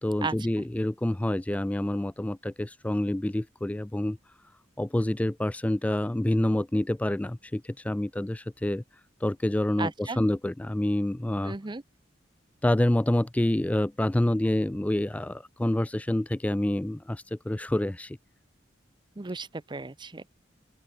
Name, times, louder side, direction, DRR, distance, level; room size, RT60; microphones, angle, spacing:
voice 1, 0.0-4.2 4.8-8.8 9.2-11.6 12.6-18.2, left 1 dB, 10° left, 0.3 m, -27 dB
voice 2, 9.8-10.2 11.4-11.8 19.2-20.3, right 3 dB, 25° right, 0.7 m, -34 dB
open air
head